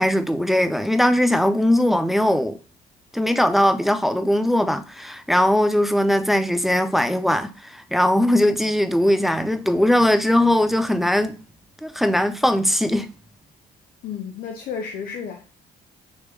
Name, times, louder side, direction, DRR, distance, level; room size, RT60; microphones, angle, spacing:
voice 1, 0.0-2.6 3.1-11.4 11.8-13.1, left 1 dB, ahead, 0.3 m, -20 dB
voice 2, 14.0-15.5, left 6 dB, 60° left, 0.6 m, -32 dB
3.2 x 3.1 x 3.4 m
cardioid pair, 110°, 17 cm